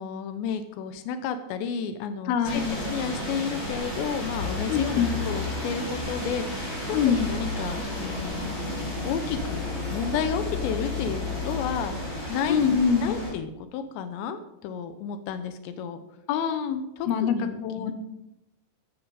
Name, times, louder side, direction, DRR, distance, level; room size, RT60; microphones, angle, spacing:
voice 1, 0.0-8.5 9.0-16.0 17.0-17.9, left 6 dB, 85° left, 9 dB, 3.1 m, -32 dB
voice 2, 2.3-2.8 4.7-5.1 6.9-7.3 12.5-13.2 16.3-17.9, left 7 dB, 70° left, 8 dB, 2.9 m, -24 dB
sound 1, 2.4-13.3, left 2 dB, 20° left, 5.4 m, -32 dB
15.0 x 12.5 x 4.9 m, 0.89 s
omnidirectional pair, 5.0 m